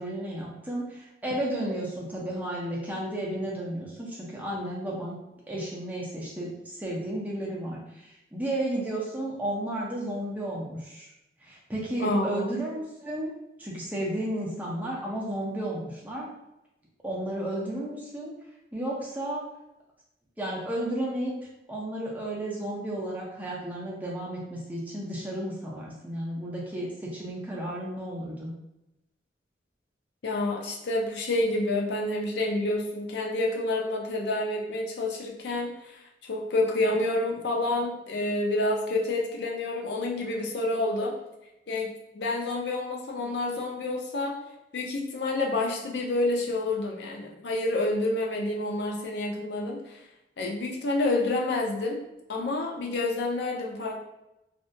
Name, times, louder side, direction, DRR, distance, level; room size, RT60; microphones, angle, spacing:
voice 1, 0.0-5.1 5.5-11.1 11.4-13.3 13.6-16.3 17.0-18.3 18.7-19.4 20.4-21.3 21.7-28.5, right 1 dB, 10° right, -5 dB, 0.5 m, -33 dB
voice 2, 12.0-12.5 30.2-36.0 36.3-41.1 41.7-44.4 44.7-50.0 50.4-52.0 52.3-53.9, left 2 dB, 70° left, -1 dB, 0.5 m, -28 dB
2.6 x 2.4 x 2.2 m, 0.91 s
head